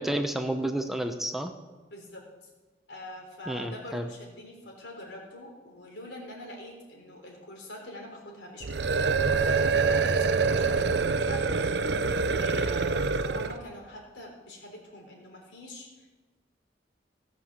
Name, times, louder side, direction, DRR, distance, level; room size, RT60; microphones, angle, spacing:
voice 1, 0.0-1.5 3.5-4.1, right 1 dB, ahead, 6 dB, 0.7 m, -30 dB
voice 2, 1.9-2.3 2.9-11.8 12.2-16.1, left 1 dB, 85° left, 0 dB, 3.8 m, -44 dB
sound 1, 8.6-13.6, right 4 dB, 75° right, 0.6 m, -25 dB
17.0 x 6.7 x 7.3 m, 1.2 s
head